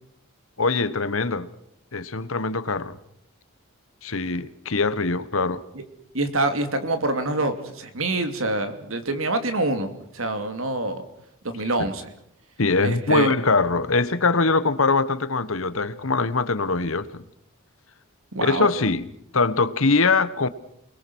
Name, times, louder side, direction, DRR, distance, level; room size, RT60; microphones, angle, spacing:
voice 1, 0.6-1.5 1.9-3.0 4.0-5.6 11.8-11.9 12.6-17.2 18.4-19.1 19.3-20.5, left 3 dB, 70° left, 15 dB, 1.3 m, -22 dB
voice 2, 6.1-11.0 11.4-12.1 12.8-13.3 18.3-18.7, right 2 dB, 70° right, 8 dB, 2.8 m, -26 dB
29.0 x 21.0 x 6.3 m, 0.73 s
head